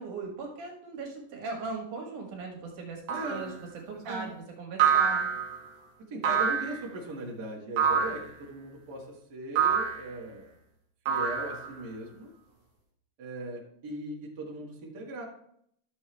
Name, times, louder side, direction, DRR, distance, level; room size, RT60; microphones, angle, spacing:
voice 1, 0.0-5.3, right 3 dB, 75° right, 0 dB, 3.1 m, -39 dB
voice 2, 3.1-3.5 4.0-4.3 6.1-10.5 11.1-12.3 13.2-15.2, right 2 dB, 35° right, -2 dB, 2.1 m, -39 dB
sound 1, 3.1-3.5 4.8-5.6 6.2-6.8 7.8-8.3 9.6-10.1 11.1-11.8, right 7 dB, 55° right, 2.1 m, -26 dB
12.5 x 6.9 x 3.4 m, 0.70 s
omnidirectional pair, 3.6 m